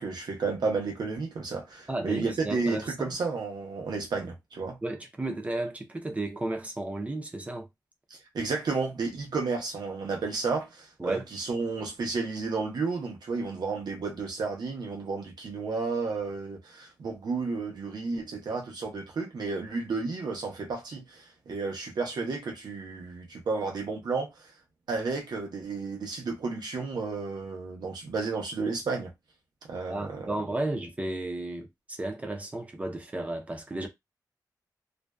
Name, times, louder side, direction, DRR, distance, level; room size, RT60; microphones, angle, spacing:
voice 1, 0.0-4.8 8.1-24.5 24.9-29.1 29.7-30.3, right 4 dB, 75° right, 0.8 m, -32 dB
voice 2, 1.9-3.2 4.8-7.7 11.0-11.3 29.9-33.9, right 2 dB, 20° right, 0.5 m, -33 dB
2.5 x 2.2 x 2.2 m
wide cardioid pair, 135°, 7 cm